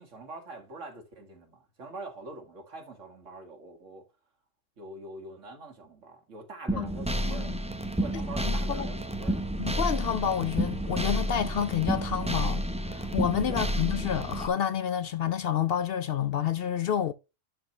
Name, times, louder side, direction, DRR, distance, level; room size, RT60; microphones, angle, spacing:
voice 1, 0.0-4.0 4.8-7.6 8.0-9.5 13.5-13.6, right 3 dB, 75° right, 2.2 m, -44 dB
sound 1, 6.7-14.5, equal, 5° right, 0.6 m, -30 dB
voice 2, 7.2-7.6 8.1-8.9 9.6-12.6 12.9-17.1, left 9 dB, 60° left, 0.7 m, -29 dB
11.5 x 4.7 x 3.1 m
omnidirectional pair, 1.3 m